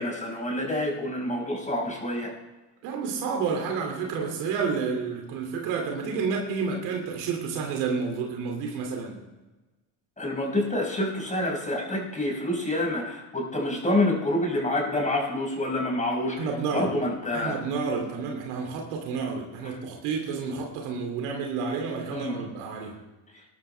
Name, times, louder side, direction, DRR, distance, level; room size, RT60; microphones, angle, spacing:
voice 1, 0.0-2.3 10.2-16.5 16.7-17.6 19.6-19.7 22.1-22.4, left 1 dB, 20° left, -1 dB, 5.1 m, -27 dB
voice 2, 2.8-9.2 16.4-16.9 17.3-22.9, right 5 dB, 85° right, 2 dB, 2.6 m, -30 dB
19.0 x 12.0 x 3.3 m, 1.2 s
supercardioid pair, 85°, 39 cm